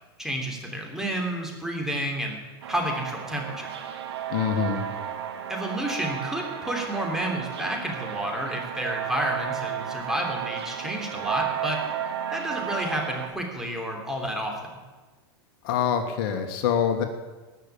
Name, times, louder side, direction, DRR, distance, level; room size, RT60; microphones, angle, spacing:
voice 1, 0.2-2.4 2.7-3.7 5.5-11.8 12.3-14.8, equal, 5° right, 0 dB, 3.4 m, -30 dB
sound 1, 2.6-13.3, right 9 dB, 85° right, 1.9 m, -33 dB
voice 2, 4.3-4.9 15.6-17.0, left 8 dB, 60° left, 6 dB, 1.6 m, -25 dB
19.5 x 6.8 x 8.5 m, 1.3 s
hypercardioid pair, 120°, 13 cm